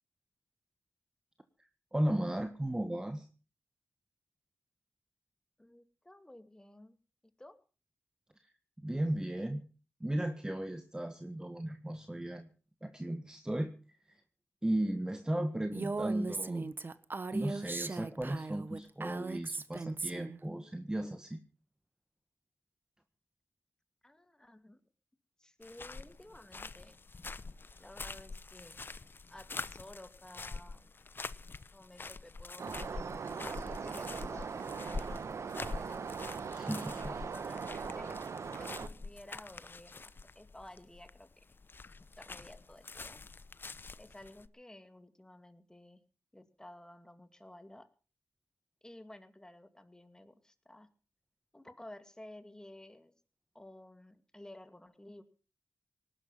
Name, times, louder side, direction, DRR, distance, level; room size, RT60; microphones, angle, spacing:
voice 1, 1.9-3.3 8.4-9.6 10.0-12.5 12.8-14.2 14.6-16.7 17.3-21.4 36.5-37.1, right 1 dB, 15° right, 8 dB, 1.6 m, -35 dB
voice 2, 5.6-7.0 7.4-7.6 24.0-24.8 25.4-27.0 27.8-28.8 29.3-30.9 31.7-36.1 37.0-38.2 38.6-41.3 42.2-43.2 44.0-46.0 46.3-47.9 48.8-50.9 51.5-53.1 53.5-55.2, left 1 dB, 15° left, 10 dB, 2.4 m, -53 dB
Female speech woman speaking, 15.7-20.4, right 3 dB, 45° right, 1.4 m, -38 dB
sound 1, 25.6-44.5, left 3 dB, 45° left, 0.9 m, -46 dB
sound 2, 32.6-38.9, right 5 dB, 75° right, 1.3 m, -40 dB
19.0 x 12.0 x 5.7 m, 0.38 s
cardioid pair, 65°, 5 cm